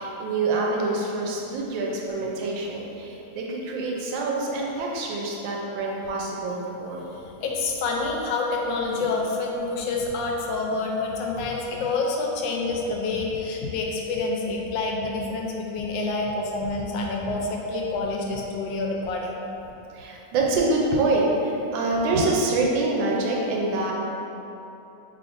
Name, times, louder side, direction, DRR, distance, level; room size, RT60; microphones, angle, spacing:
voice 1, 0.0-7.1 19.9-23.9, right 2 dB, 90° right, -2 dB, 1.3 m, -26 dB
voice 2, 7.1-19.4, left 3 dB, 85° left, 0 dB, 1.3 m, -27 dB
4.9 x 3.2 x 2.5 m, 3.0 s
omnidirectional pair, 2.0 m